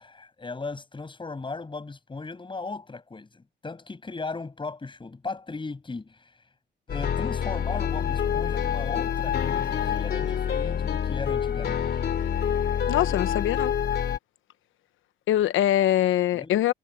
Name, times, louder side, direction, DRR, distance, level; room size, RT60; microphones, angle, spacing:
voice 1, 0.0-6.4 6.9-11.8 16.3-16.5, left 3 dB, 25° left, 7.2 m, -37 dB
sound 1, 6.9-14.2, left 8 dB, 55° left, 2.9 m, -27 dB
voice 2, 12.9-13.7 15.3-16.7, left 12 dB, 80° left, 1.1 m, -23 dB
cardioid pair, 90°, 20 cm